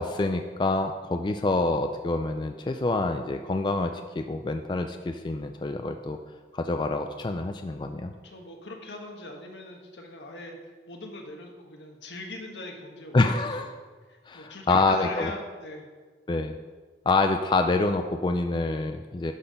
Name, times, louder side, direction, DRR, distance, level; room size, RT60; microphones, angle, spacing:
voice 1, 0.0-6.2 6.5-8.1 13.1-13.7 14.3-15.3 16.3-16.5 17.1-19.3, left 2 dB, 25° left, 6 dB, 0.3 m, -26 dB
voice 2, 8.2-13.7 14.1-15.9, left 2 dB, 80° left, 2 dB, 1.3 m, -41 dB
11.0 x 4.2 x 5.2 m, 1.4 s
head